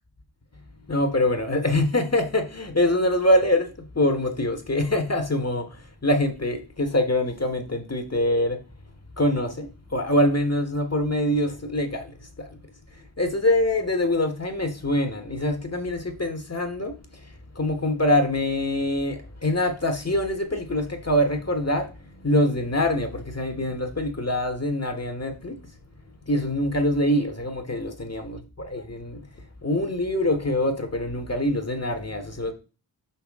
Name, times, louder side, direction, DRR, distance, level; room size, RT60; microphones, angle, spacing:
voice 1, 0.9-8.6 9.2-12.5 12.9-16.9 17.2-25.6 26.3-32.5, left 1 dB, 35° left, 1.3 m, -24 dB
5.8 x 5.8 x 3.5 m
cardioid pair, 40°, 46 cm